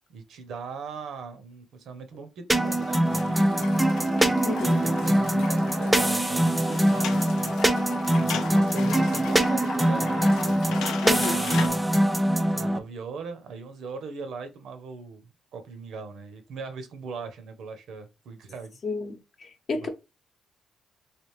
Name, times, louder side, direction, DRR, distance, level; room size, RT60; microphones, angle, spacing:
voice 1, 0.1-4.3 4.6-7.5 8.2-11.8 12.5-18.8 19.8-19.9, right 5 dB, 75° right, 0.7 m, -40 dB
sound 1, 2.5-12.8, right 1 dB, 10° right, 0.4 m, -23 dB
sound 2, 2.6-11.7, left 7 dB, 85° left, 0.5 m, -38 dB
voice 2, 4.4-4.8 11.0-11.4 18.8-19.9, left 3 dB, 50° left, 0.7 m, -31 dB
3.3 x 2.4 x 3.1 m
cardioid pair, 90°, 0 cm